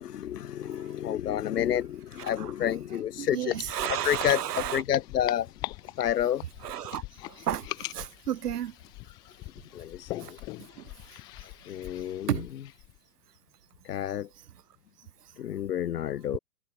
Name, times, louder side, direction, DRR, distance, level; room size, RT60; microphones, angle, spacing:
voice 1, 0.0-3.5 4.0-4.4 4.7-5.5 6.0-6.4 9.7-10.4 11.1-11.2 11.7-12.3 13.9-14.3 15.4-16.4, left 10 dB, 75° left, 1.8 m, -29 dB
voice 2, 0.6-0.9 2.2-2.5 3.2-4.8 6.6-8.7 10.2-10.3 10.6-10.9 12.3-12.4, right 11 dB, 70° right, 1.8 m, -33 dB
sound 1, 3.4-13.0, left 21 dB, 10° left, 0.5 m, -42 dB
hypercardioid pair, 150°, 48 cm